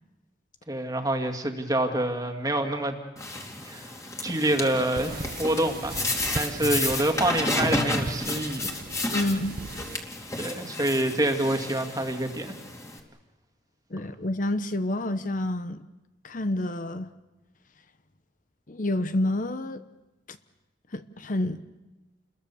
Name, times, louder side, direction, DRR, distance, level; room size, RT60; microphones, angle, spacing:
voice 1, 0.7-3.0 3.6-3.9 4.2-8.7 10.3-12.5, right 1 dB, 20° right, 5 dB, 2.2 m, -27 dB
sound 1, 3.2-13.0, left 2 dB, 15° left, 2.6 m, -32 dB
sound 2, 5.0-10.0, right 3 dB, 55° right, 0.9 m, -39 dB
voice 2, 9.1-9.5 13.9-15.8 16.2-17.1 18.7-19.8 20.3-20.4 20.9-21.6, left 1 dB, 45° left, 11 dB, 0.9 m, -28 dB
29.0 x 21.5 x 7.0 m, 1.1 s
head